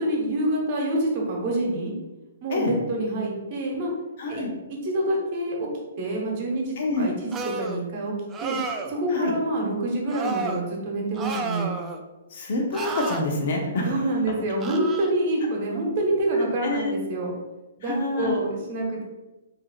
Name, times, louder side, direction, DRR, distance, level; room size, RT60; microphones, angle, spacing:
voice 1, 0.0-1.9 2.4-3.9 4.3-4.4 4.8-5.7 6.0-8.1 8.4-8.6 8.9-11.7 13.8-17.3 17.8-19.0, right 1 dB, 45° right, -1 dB, 1.0 m, -26 dB
voice 2, 4.2-4.5 6.8-7.1 9.1-9.3 12.3-14.0 16.6-17.0 17.8-18.3, left 2 dB, 55° left, 1 dB, 0.8 m, -27 dB
sound 1, 7.3-7.8 8.3-9.0 10.1-10.6 11.2-12.0 12.7-13.2 14.6-15.1, right 4 dB, 20° right, 0.3 m, -31 dB
4.7 x 2.7 x 2.4 m, 1.1 s
hypercardioid pair, 130°, 0 cm